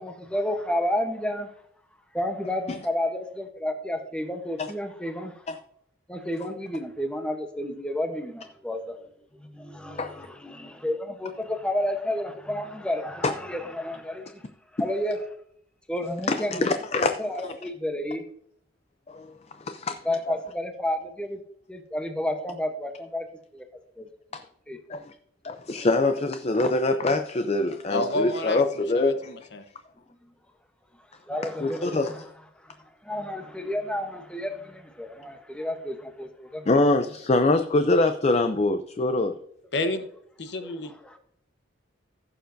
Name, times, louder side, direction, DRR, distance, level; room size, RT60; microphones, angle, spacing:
voice 1, 0.0-1.5 2.1-5.4 6.1-9.0 9.3-14.4 14.8-15.2 15.9-16.7 16.9-18.2 20.0-21.4 21.7-23.2 23.5-23.6 24.0-24.1 24.7-24.8 31.3-32.2 32.6-32.8 33.0-36.6 39.8-39.9 41.0-41.2, left 1 dB, 5° left, 0.9 m, -31 dB
voice 2, 16.3-17.5 19.1-19.3 19.6-20.0 20.3-20.4 24.3-24.4 24.9-25.1 25.4-29.3 31.6-32.2 36.7-39.3, left 2 dB, 30° left, 0.4 m, -24 dB
voice 3, 27.9-28.6 28.9-29.6 39.7-40.1 40.4-40.9, left 2 dB, 60° left, 1.0 m, -29 dB
15.5 x 6.9 x 2.6 m
head